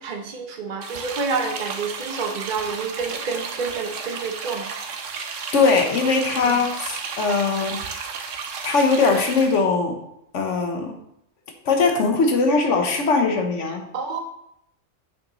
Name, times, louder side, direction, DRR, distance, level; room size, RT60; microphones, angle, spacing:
voice 1, 0.0-4.7 6.4-6.6 13.9-14.2, right 4 dB, 45° right, 4 dB, 1.0 m, -28 dB
sound 1, 0.8-9.6, right 5 dB, 75° right, 1.1 m, -33 dB
voice 2, 5.5-7.8 8.6-10.0 10.3-10.9 11.6-13.9, left 4 dB, 75° left, 4 dB, 1.3 m, -20 dB
7.7 x 6.4 x 3.0 m, 0.77 s
omnidirectional pair, 1.3 m